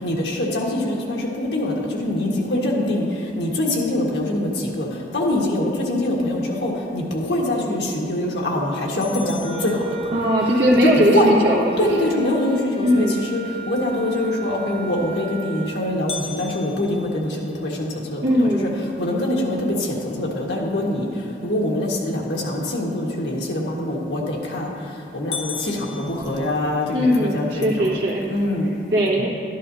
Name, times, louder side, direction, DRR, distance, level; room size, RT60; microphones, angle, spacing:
voice 1, 0.0-3.1 3.4-11.3 11.8-18.7 19.0-21.1 21.4-24.7 25.1-27.9 28.3-28.7, left 1 dB, 80° left, -2 dB, 1.6 m, -24 dB
sound 1, 9.0-10.6 16.1-18.2 18.8-18.9 19.4-19.5 20.1-20.4 24.0-24.5 24.8-24.9 25.3-27.0, left 5 dB, 35° left, 0.5 m, -37 dB
Wind instrument woodwind instrument, 9.4-15.9, right 4 dB, 25° right, 0.5 m, -34 dB
voice 2, 10.1-11.9 12.8-13.2 18.2-18.8 26.9-28.2 28.9-29.3, equal, 70° right, -5 dB, 1.6 m, -19 dB
12.5 x 11.0 x 2.8 m, 2.5 s
head